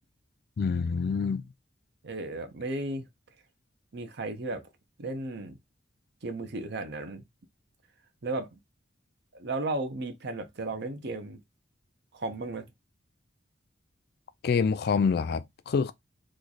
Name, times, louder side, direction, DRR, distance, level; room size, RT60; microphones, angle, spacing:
voice 1, 0.6-1.4 14.4-15.9, left 5 dB, 55° left, 0.4 m, -26 dB
voice 2, 2.0-3.1 3.9-4.7 5.0-5.6 6.2-7.2 8.2-8.5 9.3-11.4 12.1-12.7, right 2 dB, 60° right, 0.7 m, -34 dB
3.2 x 2.3 x 3.9 m
head